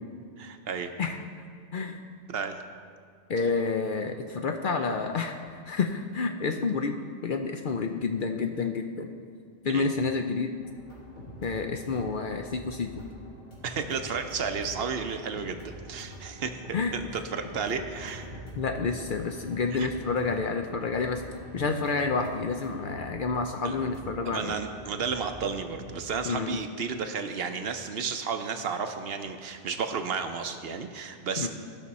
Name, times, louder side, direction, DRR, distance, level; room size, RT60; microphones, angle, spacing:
voice 1, 0.4-0.9 2.3-2.6 9.7-9.9 13.6-16.6 16.9-18.3 19.7-19.9 23.6-23.7 24.2-31.5, right 5 dB, 60° right, 7 dB, 0.8 m, -32 dB
voice 2, 3.3-5.4 5.7-9.1 9.6-10.5 11.4-13.0 16.7-16.9 18.6-21.2 21.5-24.5 26.2-26.6 31.4-31.5, left 4 dB, 60° left, 5 dB, 0.6 m, -29 dB
sound 1, 10.6-26.0, right 1 dB, 90° left, 3.0 m, -45 dB
15.0 x 5.8 x 4.2 m, 2.2 s
omnidirectional pair, 1.2 m